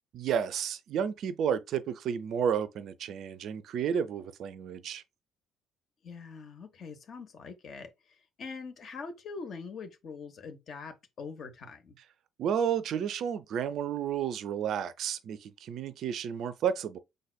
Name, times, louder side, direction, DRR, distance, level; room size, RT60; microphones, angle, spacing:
voice 1, 0.1-5.0 12.4-17.0, right 8 dB, 50° right, 0.4 m, -31 dB
voice 2, 6.0-12.0, left 5 dB, 45° left, 0.9 m, -43 dB
5.1 x 4.0 x 2.2 m
figure-of-eight pair, 50°, 0 cm